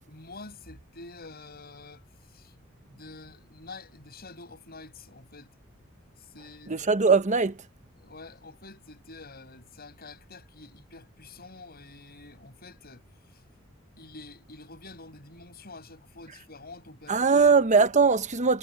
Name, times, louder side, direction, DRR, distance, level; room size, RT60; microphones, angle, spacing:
voice 1, 0.1-2.5 2.8-5.5 6.2-6.8 8.0-13.0 13.3-13.4 14.0-17.6, left 3 dB, 45° left, 7.6 m, -47 dB
voice 2, 6.7-7.6 17.1-18.6, right 4 dB, 35° right, 1.0 m, -21 dB
head